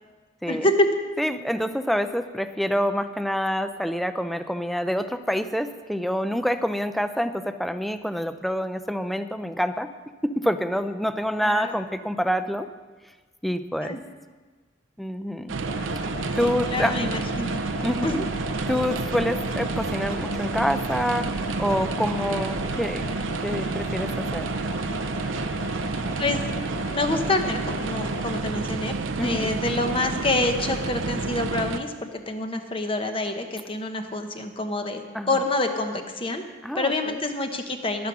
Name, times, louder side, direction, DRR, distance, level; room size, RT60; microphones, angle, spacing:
voice 1, 0.5-0.9 11.4-11.7 13.8-14.0 16.4-17.6 18.0-18.2 26.2-26.4 26.9-28.9 29.2-31.9 32.3-36.4 36.7-38.1, left 2 dB, 30° left, 6 dB, 0.9 m, -27 dB
voice 2, 1.2-9.9 10.2-12.7 13.4-14.0 15.0-15.5 16.4-17.0 17.8-18.3 18.7-23.0 23.4-24.5 29.2-29.5 35.1-35.4 36.6-37.2, equal, ahead, 10 dB, 0.4 m, -27 dB
sound 1, 15.5-31.8, right 3 dB, 85° right, 0.6 m, -29 dB
sound 2, 15.6-28.4, left 3 dB, 60° left, 1.2 m, -39 dB
11.0 x 9.5 x 6.0 m, 1.4 s
head